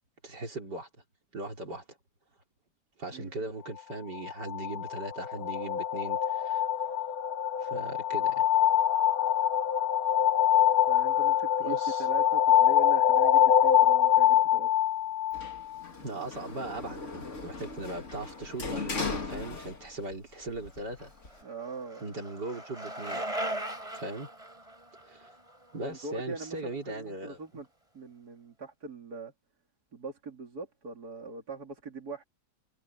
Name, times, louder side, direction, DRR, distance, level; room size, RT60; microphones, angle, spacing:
voice 1, 0.2-0.9 1.3-1.8 3.0-6.7 7.6-8.5 11.6-12.1 16.0-21.1 22.0-23.2 23.9-24.3 25.1-25.3 25.7-27.4, right 2 dB, 85° right, 5.2 m, -39 dB
sound 1, 4.1-15.8, left 10 dB, 65° left, 1.5 m, -24 dB
voice 2, 10.9-14.7 21.4-22.1 25.8-27.7 27.9-29.3 29.9-32.2, right 3 dB, 65° right, 3.5 m, -41 dB
Sliding door, 15.3-20.2 20.5-21.4, left 4 dB, 45° left, 2.5 m, -38 dB
Bicycle, 20.8-26.8, right 1 dB, 20° right, 6.0 m, -39 dB
omnidirectional pair, 1.8 m